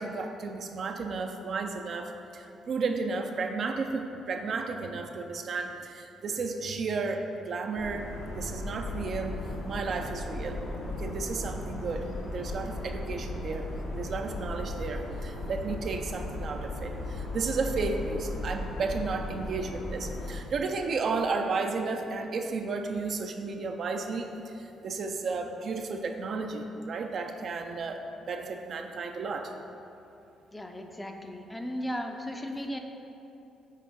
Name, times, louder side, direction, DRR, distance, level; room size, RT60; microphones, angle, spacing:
voice 1, 0.0-8.1 8.3-9.4 9.6-10.6 11.0-13.7 14.0-29.5, right 4 dB, 55° right, 4 dB, 0.5 m, -33 dB
sound 1, 7.7-20.4, left 2 dB, 85° left, 1.4 m, -36 dB
voice 2, 30.5-32.8, equal, 15° left, 4 dB, 0.5 m, -36 dB
6.4 x 3.8 x 5.3 m, 2.8 s
cardioid pair, 90°, 0 cm